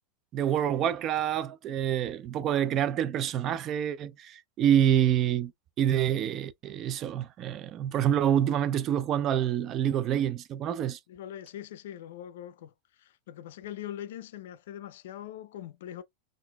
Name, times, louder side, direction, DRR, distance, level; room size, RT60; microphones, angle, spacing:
voice 1, 0.3-5.5 5.8-11.0, right 10 dB, 35° right, 0.3 m, -27 dB
voice 2, 11.1-12.7 13.0-16.0, left 11 dB, 80° left, 0.4 m, -42 dB
3.8 x 2.4 x 2.2 m
supercardioid pair, 140°, 0 cm